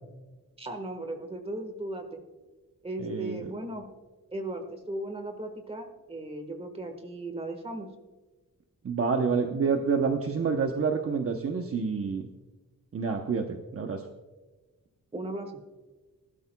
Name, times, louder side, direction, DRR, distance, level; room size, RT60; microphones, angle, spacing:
voice 1, 0.6-2.0 2.8-3.8 4.3-7.9 15.1-15.6, right 1 dB, 15° right, 5 dB, 1.5 m, -37 dB
voice 2, 3.0-3.5 8.8-12.3 12.9-14.0, right 5 dB, 45° right, 3 dB, 0.8 m, -28 dB
20.0 x 12.0 x 2.3 m, 1.2 s
wide cardioid pair, 180°, 34 cm